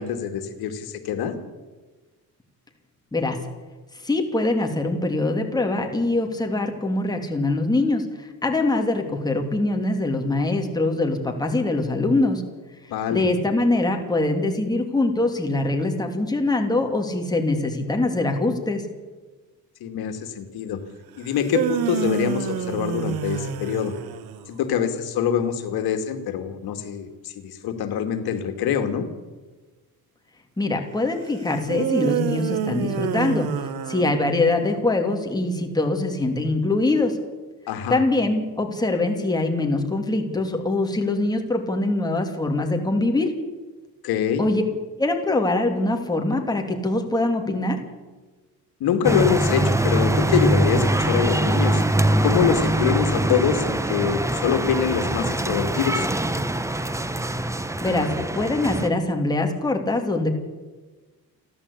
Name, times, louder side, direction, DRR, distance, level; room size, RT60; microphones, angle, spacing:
voice 1, 0.0-1.3 12.9-13.2 19.8-20.8 21.2-23.9 24.5-29.1 37.7-38.0 44.0-44.4 48.8-51.8 52.2-56.1, left 8 dB, 80° left, 7 dB, 2.4 m, -24 dB
voice 2, 4.0-12.4 13.1-18.8 30.6-33.5 33.9-37.2 37.9-43.3 44.4-44.6 45.0-47.8 57.8-58.1 58.3-60.3, left 2 dB, 10° left, 3 dB, 2.8 m, -23 dB
sound 1, 21.3-24.5 31.7-34.6, right 9 dB, 75° right, 1.5 m, -28 dB
sound 2, 49.0-58.9, right 1 dB, 10° right, 1.0 m, -23 dB
30.0 x 11.0 x 8.5 m, 1.3 s
cardioid pair, 145°, 37 cm